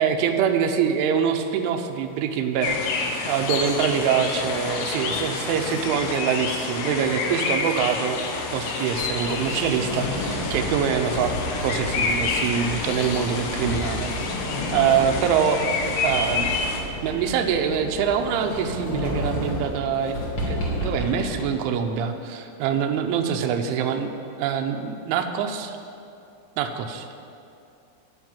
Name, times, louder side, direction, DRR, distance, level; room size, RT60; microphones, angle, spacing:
voice 1, 0.0-11.4 11.6-14.1 14.7-15.6 16.0-16.5 17.0-20.2 20.5-24.1 24.4-25.8 26.6-27.1, right 7 dB, 80° right, 5 dB, 3.1 m, -24 dB
sound 1, 2.6-16.8, left 4 dB, 85° left, 3.7 m, -28 dB
Sliding door, 9.2-21.4, equal, 40° left, 1.4 m, -31 dB
14.0 x 5.7 x 9.0 m, 2.6 s
omnidirectional pair, 5.6 m